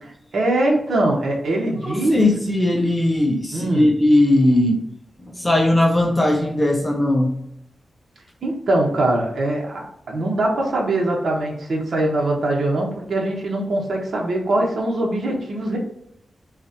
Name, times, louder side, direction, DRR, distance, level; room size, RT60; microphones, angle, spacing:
voice 1, 0.3-2.2 3.5-3.9 8.4-15.8, right 1 dB, 60° right, -1 dB, 1.2 m, -22 dB
voice 2, 1.8-4.8 5.2-7.4, left 1 dB, 15° left, 2 dB, 0.6 m, -18 dB
6.1 x 2.5 x 2.9 m, 0.77 s
wide cardioid pair, 175°, 0 cm